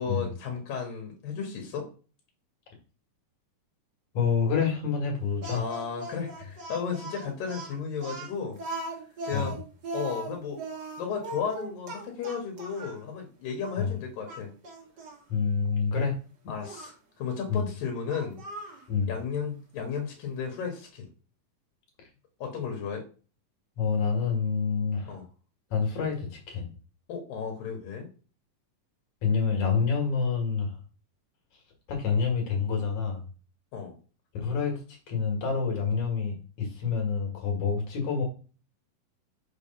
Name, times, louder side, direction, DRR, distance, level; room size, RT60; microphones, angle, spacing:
voice 1, 0.0-1.9 5.5-8.6 9.3-9.5 9.9-10.6 11.0-14.5 16.5-18.4 19.1-21.1 22.4-23.0 25.1-25.3 27.1-28.1 33.7-34.0, left 6 dB, 75° left, 2 dB, 3.0 m, -34 dB
voice 2, 4.1-5.6 9.3-9.5 13.8-13.9 15.3-16.1 17.5-17.6 18.9-19.1 23.8-25.2 25.7-26.7 29.2-30.8 31.9-33.2 34.3-34.7 35.1-38.2, left 5 dB, 60° left, 1 dB, 3.1 m, -27 dB
Speech, 5.4-13.0 13.6-13.8 14.3-15.2 16.6-16.9 18.1-18.8, right 2 dB, 50° right, 1.2 m, -39 dB
6.2 x 3.5 x 5.6 m, 0.36 s
omnidirectional pair, 4.1 m